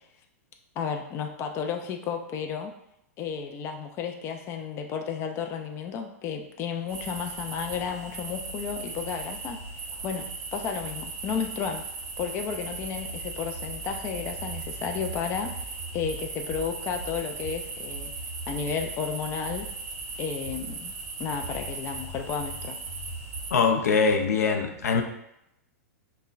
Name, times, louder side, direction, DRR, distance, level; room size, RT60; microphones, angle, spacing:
voice 1, 0.8-2.7 3.2-9.6 10.0-11.8 12.2-15.6 15.9-18.1 18.5-19.7 20.2-20.9 21.2-22.8, left 6 dB, 30° left, 4 dB, 0.4 m, -32 dB
sound 1, 6.9-23.5, right 3 dB, 40° right, 0.9 m, -37 dB
voice 2, 23.5-25.0, left 5 dB, 85° left, 5 dB, 0.5 m, -23 dB
5.3 x 2.1 x 2.4 m, 0.81 s
hypercardioid pair, 120°, 8 cm